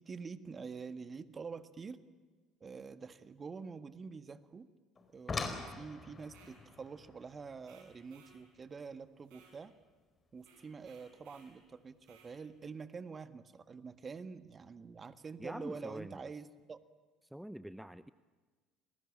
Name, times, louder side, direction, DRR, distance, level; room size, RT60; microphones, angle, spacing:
voice 1, 0.0-2.0 2.6-4.7 5.1-9.7 10.3-16.8, right 5 dB, 35° right, 12 dB, 1.7 m, -46 dB
sound 1, 4.9-10.0 11.4-11.5 12.1-12.3 12.6-12.7, left 4 dB, 30° left, 4.6 m, -44 dB
sound 2, 6.2-6.6 7.6-8.4 9.2-9.6 10.4-11.5 12.0-12.3, right 5 dB, 70° right, 7.2 m, -63 dB
voice 2, 15.4-16.2 17.3-18.1, equal, 5° right, 14 dB, 0.8 m, -45 dB
29.0 x 20.5 x 8.7 m, 1.4 s
hypercardioid pair, 65°, 0 cm